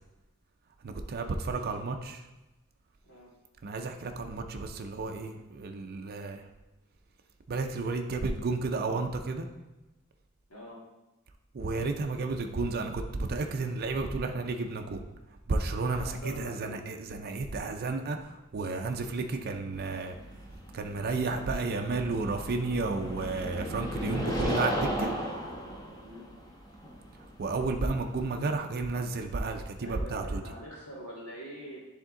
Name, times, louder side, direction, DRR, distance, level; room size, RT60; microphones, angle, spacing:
voice 1, 0.8-2.2 3.6-6.5 7.5-9.4 11.5-15.0 15.5-20.2 20.7-25.1 27.4-30.4, right 3 dB, 45° right, 5 dB, 0.5 m, -32 dB
voice 2, 10.5-10.8 15.9-16.8 26.0-26.3 29.7-31.8, equal, 80° left, -4 dB, 1.9 m, -44 dB
sound 1, 19.7-28.6, equal, 20° left, 0.9 m, -36 dB
10.0 x 3.6 x 3.7 m, 1.0 s
head